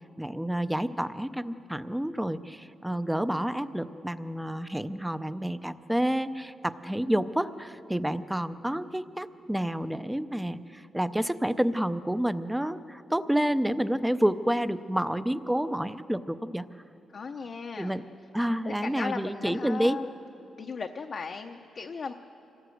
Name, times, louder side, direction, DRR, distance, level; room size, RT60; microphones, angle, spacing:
voice 1, 0.2-16.7 17.8-18.0 18.3-20.0, equal, 5° right, 13 dB, 0.5 m, -29 dB
voice 2, 17.1-18.0 18.6-20.2 20.6-22.1, left 5 dB, 45° left, 4 dB, 0.7 m, -37 dB
26.0 x 18.0 x 7.8 m, 2.9 s
wide cardioid pair, 145°, 0 cm